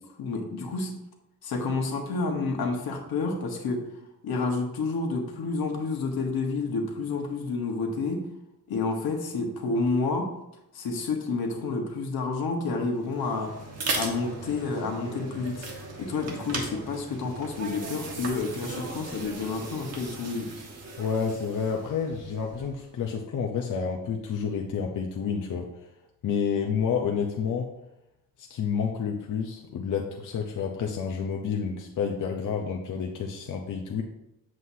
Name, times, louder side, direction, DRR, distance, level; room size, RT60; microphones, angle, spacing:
voice 1, 0.2-1.0 1.4-3.9 4.2-8.3 8.7-10.3 10.7-13.6 14.0-15.7 16.0-20.5, left 3 dB, 80° left, 3 dB, 1.4 m, -29 dB
sound 1, 13.0-22.9, right 3 dB, 45° right, 1.4 m, -37 dB
voice 2, 21.0-25.7 26.2-27.7 28.4-34.0, left 6 dB, 60° left, 1 dB, 0.8 m, -29 dB
7.9 x 7.6 x 2.8 m, 0.87 s
wide cardioid pair, 160°, 36 cm